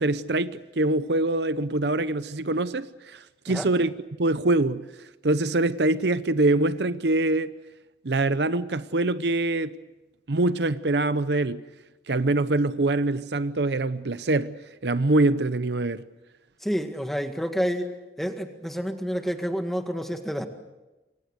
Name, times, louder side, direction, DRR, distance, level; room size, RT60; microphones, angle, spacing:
voice 1, 0.0-3.9 4.2-4.8 5.2-7.5 8.0-9.7 10.3-11.6 12.1-16.0, right 2 dB, 70° right, 0.8 m, -24 dB
voice 2, 16.6-17.9 18.2-20.5, equal, ahead, 1.9 m, -29 dB
28.0 x 24.5 x 6.6 m
head